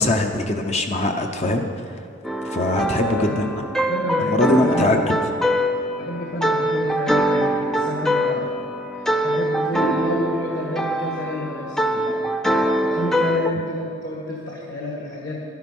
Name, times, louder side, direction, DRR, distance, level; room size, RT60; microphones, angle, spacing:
voice 1, 0.0-2.0 2.4-3.4 4.2-5.0, left 2 dB, 30° left, 4 dB, 0.7 m, -21 dB
sound 1, 2.2-13.5, equal, ahead, 0.4 m, -23 dB
voice 2, 2.7-3.5 3.9-5.0 6.0-8.5 8.9-15.4, left 1 dB, 50° left, -3 dB, 1.6 m, -29 dB
12.0 x 10.5 x 5.4 m, 2.6 s
head